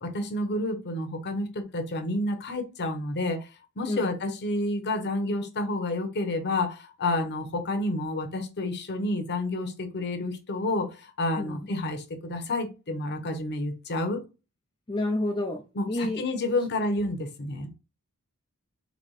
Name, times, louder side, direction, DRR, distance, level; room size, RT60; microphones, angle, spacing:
voice 1, 0.0-3.4 3.8-14.2 15.7-17.7, left 2 dB, 50° left, 0.9 m, -29 dB
voice 2, 11.4-11.7 14.9-15.6 15.9-16.2, left 1 dB, 20° left, 0.5 m, -29 dB
4.0 x 2.9 x 3.2 m
head